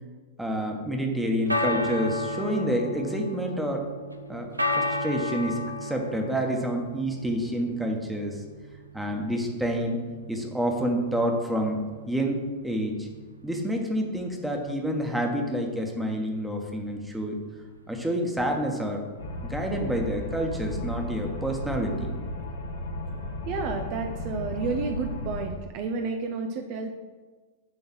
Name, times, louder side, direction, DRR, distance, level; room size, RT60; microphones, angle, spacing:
voice 1, 0.4-3.8 4.3-4.5 4.8-8.4 8.9-11.8 12.1-13.1 13.4-17.4 17.9-19.0 19.4-22.2, equal, 5° right, 1 dB, 1.3 m, -28 dB
sound 1, 1.1-20.2, left 1 dB, 85° right, 0.6 m, -35 dB
sound 2, 19.2-25.5, left 1 dB, 65° left, 1.3 m, -34 dB
voice 2, 23.5-26.9, right 4 dB, 40° right, 4 dB, 0.7 m, -31 dB
9.6 x 3.9 x 6.0 m, 1.4 s
figure-of-eight pair, 95°, 0 cm